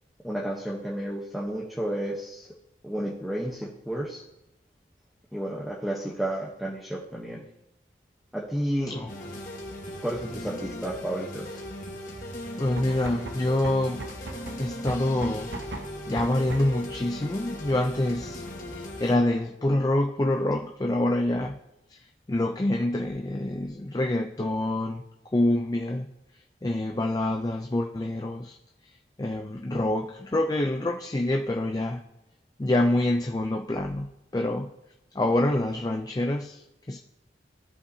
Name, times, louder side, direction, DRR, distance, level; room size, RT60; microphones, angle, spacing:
voice 1, 0.2-2.5 2.8-4.2 5.3-7.4 8.3-8.9 9.9-11.6, right 1 dB, ahead, -4 dB, 0.9 m, -32 dB
sound 1, 9.1-19.2, left 1 dB, 50° left, 1.4 m, -38 dB
voice 2, 12.6-14.0 14.6-15.5 16.1-18.4 18.7-21.6 21.9-22.0 22.3-25.0 25.3-26.1 26.6-28.6 29.2-32.0 32.6-34.1 34.3-34.7 35.1-37.0, left 1 dB, 20° left, 3 dB, 0.4 m, -26 dB
sound 2, 12.8-16.9, right 2 dB, 85° right, 0.8 m, -39 dB
15.5 x 5.5 x 2.7 m, 0.91 s
head